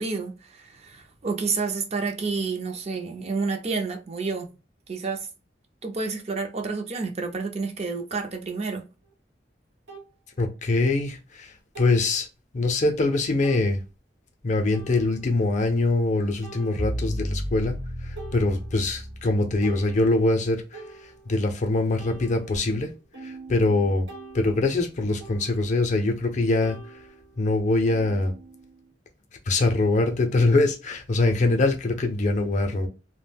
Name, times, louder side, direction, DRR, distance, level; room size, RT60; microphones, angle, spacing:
voice 1, 0.0-4.5 4.9-5.3 5.8-8.9, right 4 dB, 35° right, 0.5 m, -29 dB
sound 1, 9.0-9.1 9.9-10.1 11.7-12.2 12.7-12.8 13.4-13.7 14.7-15.4 16.4-17.3 17.7-17.9 18.2-19.0 19.4-21.5 22.0-26.3 26.6-28.9, right 4 dB, 90° right, 0.9 m, -45 dB
voice 2, 10.4-12.3 12.5-13.8 14.4-17.7 18.0-22.9 23.2-24.1 24.3-26.8 27.4-28.3 29.5-32.9, left 2 dB, 45° left, 0.5 m, -23 dB
sound 2, 16.8-19.8, equal, 60° right, 1.0 m, -32 dB
2.3 x 2.1 x 3.3 m
head